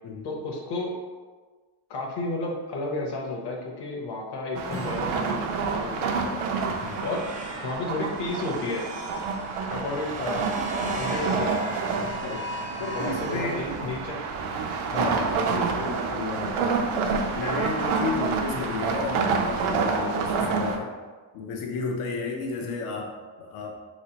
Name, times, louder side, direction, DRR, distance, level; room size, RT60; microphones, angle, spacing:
voice 1, 0.2-1.0 1.9-6.4 7.0-7.3 7.6-8.9 9.7-10.5 11.0-11.7 12.9-14.2 14.9-15.1 18.5-18.7 20.4-20.6 22.6-22.8, left 2 dB, 55° left, 0 dB, 0.8 m, -32 dB
sound 1, 4.6-20.8, right 5 dB, 85° right, 0.6 m, -28 dB
Strum, 4.7-10.0, right 1 dB, 30° left, 0.6 m, -43 dB
sound 2, 6.0-14.2, equal, 20° right, 0.4 m, -38 dB
voice 2, 6.8-7.1 12.2-12.4 12.8-13.6 14.9-16.8 17.1-20.9 21.3-23.1 23.4-23.7, left 4 dB, 90° left, 1 dB, 0.8 m, -33 dB
3.3 x 3.1 x 2.8 m, 1.4 s
cardioid pair, 110°, 49 cm